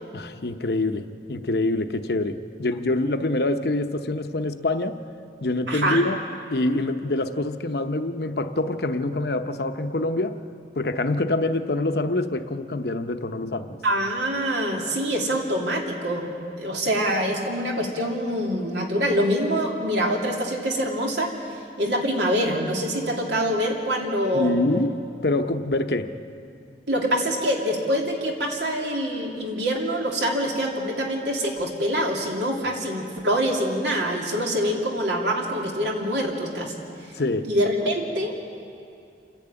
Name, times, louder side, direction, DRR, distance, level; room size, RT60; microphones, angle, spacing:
voice 1, 0.1-5.0 5.4-6.2 6.5-10.4 10.8-13.8 24.3-24.9 25.2-26.1 37.1-37.4, left 2 dB, 60° left, 8 dB, 0.8 m, -25 dB
voice 2, 5.7-6.0 13.8-16.3 16.6-21.3 21.8-24.6 26.9-36.8 37.4-38.4, equal, 75° right, 0 dB, 2.8 m, -25 dB
28.0 x 11.0 x 8.8 m, 2.4 s
head